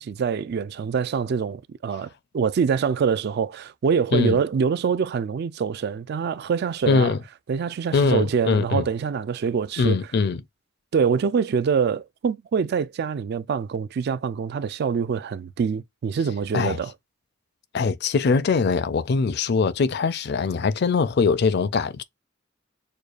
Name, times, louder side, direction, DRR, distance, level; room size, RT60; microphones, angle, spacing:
voice 1, 0.0-7.1 7.5-10.0 10.9-16.9, right 6 dB, 55° right, 0.3 m, -25 dB
voice 2, 6.9-7.2 7.9-8.9 9.8-10.4 16.5-16.8 17.7-22.0, left 4 dB, 55° left, 0.4 m, -22 dB
6.4 x 2.3 x 2.4 m
head